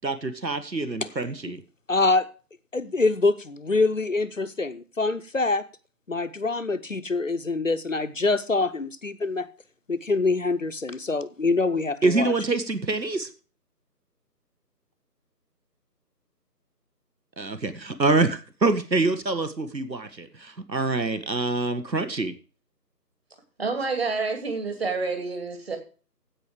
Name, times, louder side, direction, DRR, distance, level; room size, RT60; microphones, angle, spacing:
voice 1, 0.0-1.6 12.0-13.3 17.4-22.3, right 3 dB, 80° right, 1.8 m, -25 dB
voice 2, 1.9-2.3 2.7-5.6 6.1-9.5 9.9-12.3, left 3 dB, 50° left, 0.8 m, -25 dB
voice 3, 23.6-25.8, right 4 dB, 35° right, 2.5 m, -28 dB
15.5 x 5.4 x 4.9 m
figure-of-eight pair, 160°, 50 cm